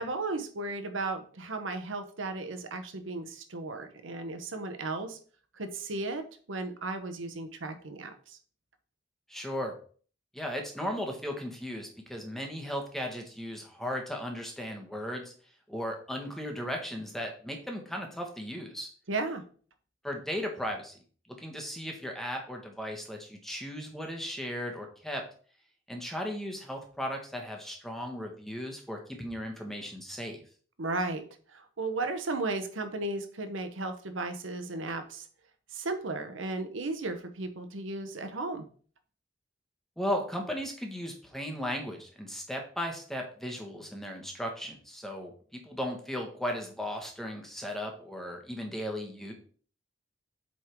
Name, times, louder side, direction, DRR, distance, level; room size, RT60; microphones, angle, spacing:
voice 1, 0.0-5.2 5.5-6.2 6.5-8.4 19.1-19.4 30.8-31.2 31.5-35.3 35.7-38.7, right 2 dB, 85° right, 8 dB, 1.0 m, -35 dB
voice 2, 9.3-9.7 10.3-15.3 15.7-18.9 20.0-20.9 21.4-25.2 25.9-30.4 40.0-45.3 45.6-49.3, equal, ahead, 2 dB, 1.3 m, -36 dB
8.2 x 3.7 x 4.5 m, 0.43 s
head